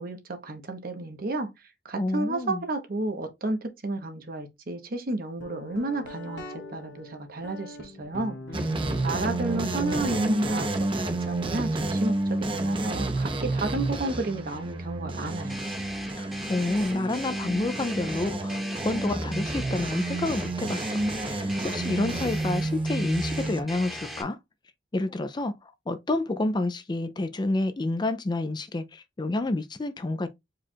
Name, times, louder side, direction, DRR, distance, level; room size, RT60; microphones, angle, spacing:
voice 1, 0.0-1.5 1.8-6.4 6.7-8.4 9.0-10.7 11.0-12.2 12.5-15.6, right 2 dB, 55° right, 1.0 m, -31 dB
voice 2, 2.0-2.6 16.2-24.4 24.9-30.3, left 2 dB, 25° left, 0.4 m, -29 dB
Guitar, 5.4-14.9, left 2 dB, 70° left, 1.2 m, -44 dB
sound 1, 8.5-23.6, right 2 dB, 30° right, 0.7 m, -30 dB
sound 2, 15.5-24.2, equal, ahead, 1.0 m, -39 dB
4.9 x 2.4 x 4.3 m
head